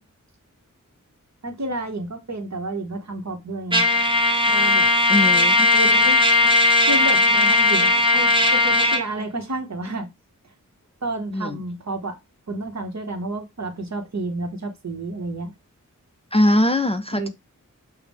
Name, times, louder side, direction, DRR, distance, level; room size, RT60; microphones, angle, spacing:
voice 1, 1.4-3.8 4.5-4.9 5.7-10.1 11.0-12.2 12.5-15.5 17.1-17.3, right 2 dB, 55° right, 1.0 m, -30 dB
Trumpet, 3.7-9.1, left 2 dB, 15° right, 0.7 m, -17 dB
voice 2, 5.1-5.7 11.3-11.6 16.3-17.3, left 1 dB, 20° left, 0.4 m, -21 dB
5.6 x 2.1 x 3.4 m
wide cardioid pair, 50°, 33 cm